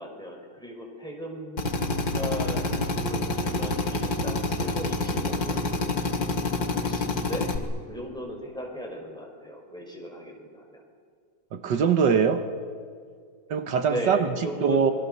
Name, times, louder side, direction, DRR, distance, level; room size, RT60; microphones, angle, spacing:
voice 1, 0.0-1.7 2.1-2.6 2.9-5.6 6.7-7.5 7.9-10.8 13.9-14.9, equal, ahead, 0 dB, 5.0 m, -36 dB
Drill, 1.6-7.6, left 2 dB, 55° left, 2.5 m, -27 dB
voice 2, 11.5-12.5 13.5-14.3 14.6-14.9, right 6 dB, 75° right, 7 dB, 1.8 m, -22 dB
27.5 x 23.0 x 6.8 m, 2.1 s
omnidirectional pair, 1.9 m